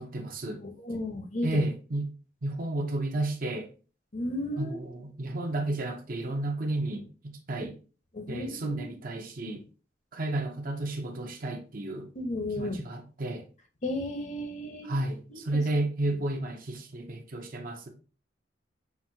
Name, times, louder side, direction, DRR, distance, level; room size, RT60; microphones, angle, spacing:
voice 1, 0.0-0.6 1.4-2.1 2.4-3.7 4.6-7.7 8.3-9.6 10.1-12.1 12.6-13.4 14.8-17.9, right 2 dB, 50° right, 0.7 m, -32 dB
voice 2, 0.6-1.5 4.1-4.8 8.1-8.9 12.1-12.8 13.8-14.9 15.3-15.4, left 1 dB, 40° left, 0.8 m, -34 dB
5.8 x 2.6 x 2.7 m
head